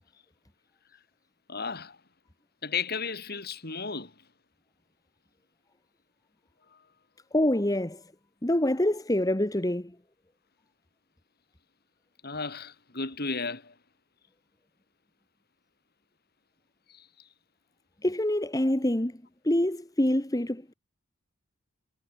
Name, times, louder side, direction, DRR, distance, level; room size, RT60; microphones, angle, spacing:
voice 1, 1.5-2.0 2.6-4.1 12.2-13.7 16.9-17.1, left 5 dB, 45° left, 3.7 m, -34 dB
voice 2, 7.3-8.0 8.4-9.9 18.0-19.2 19.4-20.7, left 1 dB, 15° left, 1.4 m, -26 dB
head